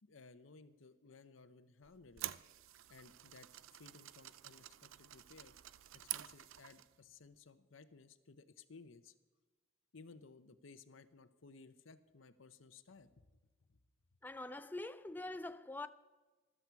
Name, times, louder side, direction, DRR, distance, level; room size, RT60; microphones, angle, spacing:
voice 1, 0.0-2.3 2.9-3.5 3.7-5.5 5.9-9.1 9.9-13.3 13.7-13.8, left 4 dB, 75° left, 0.8 m, -59 dB
sound 1, 1.8-7.0, right 14 dB, 90° right, 0.5 m, -49 dB
voice 2, 14.2-15.9, left 2 dB, 10° left, 0.4 m, -44 dB
14.5 x 12.5 x 4.6 m
head